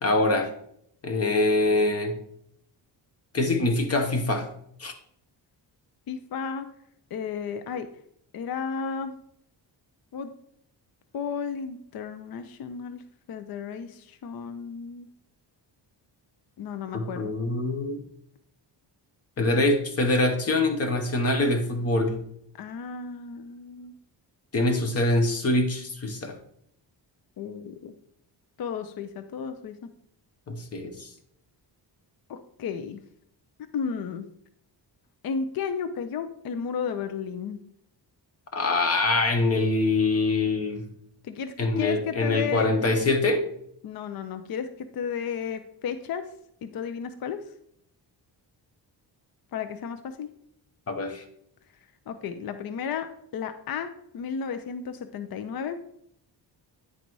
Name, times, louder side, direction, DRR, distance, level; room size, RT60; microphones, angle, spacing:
voice 1, 0.0-0.5 1.0-2.1 3.3-4.5 4.8-4.9 16.9-18.0 19.4-22.2 24.5-26.4 30.5-31.1 38.5-40.8 41.6-43.4 50.9-51.2, left 2 dB, 35° left, 6 dB, 1.0 m, -24 dB
voice 2, 6.1-6.7 7.1-7.9 8.3-9.1 10.1-10.3 11.1-13.0 13.3-15.1 16.6-17.3 22.6-23.9 27.4-27.9 28.6-29.9 32.3-33.0 33.7-34.3 35.2-37.6 41.2-42.7 43.8-46.2 46.6-47.4 49.5-50.3 52.1-53.1 53.3-55.8, left 6 dB, 55° left, 9 dB, 0.6 m, -33 dB
9.7 x 4.0 x 4.6 m, 0.72 s
wide cardioid pair, 175°, 44 cm